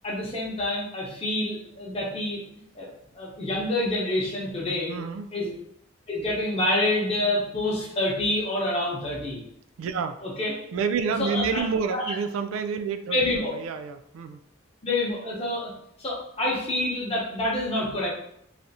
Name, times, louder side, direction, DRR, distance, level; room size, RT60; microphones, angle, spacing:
voice 1, 0.0-2.4 2.7-2.9 3.1-4.9 5.3-5.5 6.1-9.4 10.2-10.6 11.2-11.6 11.9-12.1 13.1-13.5 14.8-15.7 16.0-18.1, left 1 dB, 30° left, -4 dB, 0.8 m, -27 dB
voice 2, 4.9-5.3 9.8-10.2 10.7-14.4, right 5 dB, 90° right, 8 dB, 0.3 m, -29 dB
3.3 x 2.4 x 2.7 m, 0.72 s
head